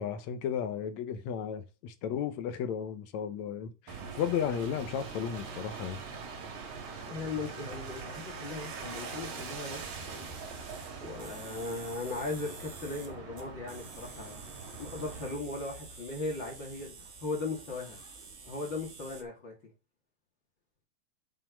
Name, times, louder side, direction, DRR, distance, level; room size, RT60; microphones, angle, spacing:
voice 1, 0.0-6.0, left 8 dB, 75° left, 2.2 m, -34 dB
sound 1, 3.9-15.4, right 5 dB, 80° right, 3.2 m, -43 dB
voice 2, 7.1-10.4 11.0-14.4 14.8-16.9 17.2-18.0 18.5-19.5, left 3 dB, 40° left, 2.9 m, -38 dB
sound 2, 9.7-19.2, right 4 dB, 55° right, 0.7 m, -48 dB
7.4 x 5.8 x 5.2 m
omnidirectional pair, 3.4 m